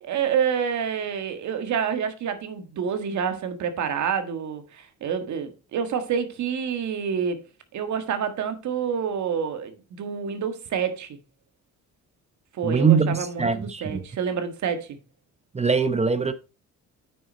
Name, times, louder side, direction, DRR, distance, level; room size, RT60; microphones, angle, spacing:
voice 1, 0.0-7.4 7.7-11.2 12.5-15.0, right 7 dB, 70° right, 1.7 m, -28 dB
voice 2, 12.6-14.0 15.5-16.3, right 5 dB, 20° right, 0.9 m, -22 dB
9.0 x 6.2 x 4.2 m
cardioid pair, 90°, 30 cm